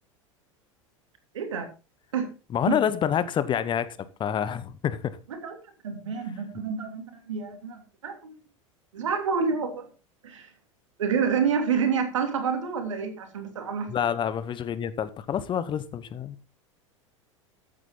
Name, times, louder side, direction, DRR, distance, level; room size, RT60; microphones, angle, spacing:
voice 1, 1.3-1.7 2.1-2.3 2.7-2.8 5.3-5.5 5.8-8.3 8.9-9.9 10.2-10.5 11.0-14.1, right 6 dB, 70° right, 3.0 m, -28 dB
voice 2, 2.5-3.9 4.2-5.2 13.9-16.4, left 9 dB, 30° left, 1.0 m, -27 dB
14.5 x 8.8 x 3.8 m
figure-of-eight pair, 80°, 17 cm